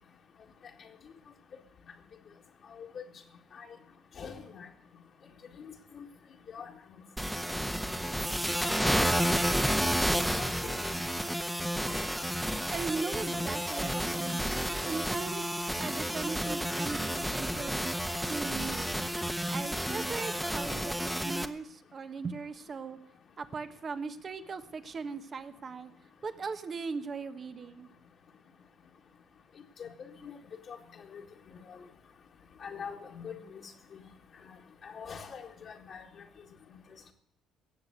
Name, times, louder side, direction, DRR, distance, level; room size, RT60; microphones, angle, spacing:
voice 1, 4.2-4.7 5.6-6.1 6.5-6.7 8.6-9.7 10.0-10.9 13.3-13.5 29.8-30.4 30.7-30.8 31.1-31.2 31.7-31.8 32.6-33.6 34.8-36.0, left 6 dB, 55° left, -2 dB, 1.8 m, -43 dB
sound 1, 7.2-21.5, equal, 5° right, 1.1 m, -31 dB
voice 2, 12.7-18.9 19.5-23.0 23.4-25.9 26.2-27.9, right 5 dB, 45° right, 10 dB, 1.3 m, -39 dB
17.5 x 7.3 x 8.0 m, 0.72 s
hypercardioid pair, 60°, 0 cm